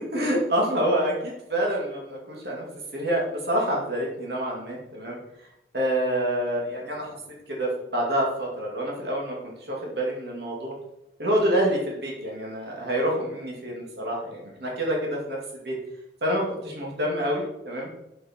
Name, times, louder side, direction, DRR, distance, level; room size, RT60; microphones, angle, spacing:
voice 1, 0.1-2.6 2.9-5.2 5.7-7.2 7.5-10.7 11.2-15.4 15.6-15.8 16.2-17.9, right 1 dB, 65° right, -2 dB, 2.4 m, -27 dB
7.2 x 7.1 x 4.4 m, 0.86 s
head